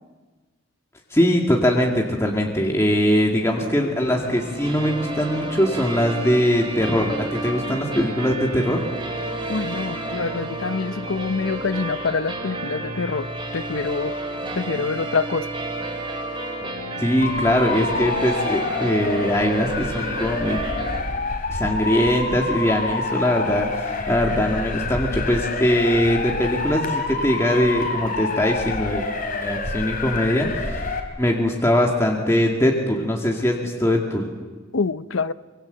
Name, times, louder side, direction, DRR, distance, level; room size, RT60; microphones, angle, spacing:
voice 1, 1.1-8.8 17.0-20.6 21.5-29.0 29.4-30.8 31.2-34.3, equal, 15° left, -1 dB, 2.1 m, -21 dB
sound 1, 3.5-21.0, right 2 dB, 25° right, 4.1 m, -31 dB
voice 2, 9.5-14.2 14.5-15.5 34.7-35.3, left 4 dB, 80° left, 14 dB, 0.7 m, -26 dB
Motor vehicle (road) / Siren, 17.2-31.0, left 3 dB, 45° left, 3.5 m, -28 dB
25.0 x 24.0 x 7.9 m, 1.4 s
head